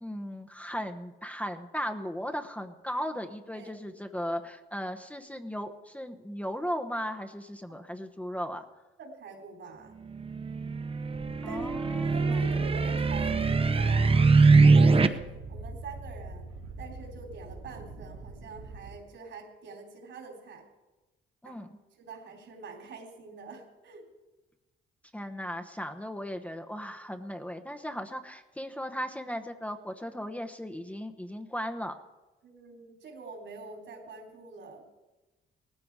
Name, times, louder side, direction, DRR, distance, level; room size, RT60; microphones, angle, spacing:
voice 1, 0.0-8.6 11.4-12.6 21.4-21.7 25.1-31.9, equal, 5° left, 5 dB, 0.9 m, -37 dB
voice 2, 9.0-9.9 11.5-14.2 14.5-16.5 16.8-20.6 21.4-21.6 22.0-24.1 32.4-34.8, right 4 dB, 65° right, 3 dB, 3.6 m, -45 dB
sound 1, 10.1-15.1, right 4 dB, 30° right, 0.9 m, -22 dB
sound 2, 11.0-19.0, right 3 dB, 90° right, 2.0 m, -45 dB
18.0 x 14.5 x 4.8 m, 1.1 s
cardioid pair, 90°, 20 cm